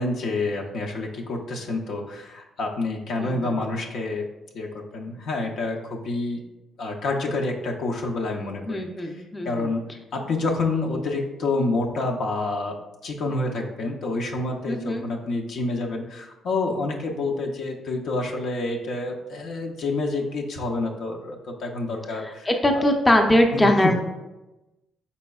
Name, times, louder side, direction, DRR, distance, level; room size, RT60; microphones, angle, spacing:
voice 1, 0.0-4.3 4.5-6.4 6.8-9.2 9.4-9.8 10.1-12.8 13.0-22.5 22.7-22.9 23.5-24.0, left 2 dB, 70° left, 1 dB, 0.6 m, -28 dB
voice 2, 3.2-3.5 8.7-9.7 14.7-15.0 22.2-24.0, left 1 dB, 15° left, 3 dB, 0.6 m, -22 dB
4.5 x 4.1 x 2.3 m, 1.0 s
cardioid pair, 90°, 0 cm